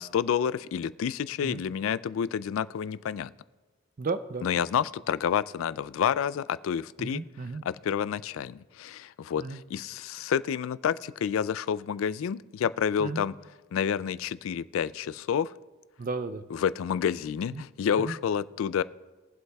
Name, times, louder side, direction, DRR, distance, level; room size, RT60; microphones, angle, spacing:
voice 1, 0.0-3.3 4.4-7.2 7.7-13.3 13.7-15.5 16.5-18.8, left 8 dB, 75° left, 17 dB, 0.3 m, -29 dB
voice 2, 4.0-4.5 7.0-7.6 9.4-9.6 13.0-13.2 16.0-16.5 17.5-17.6 18.0-18.1, right 3 dB, 40° right, 11 dB, 0.5 m, -34 dB
22.0 x 7.9 x 2.3 m, 1.2 s
head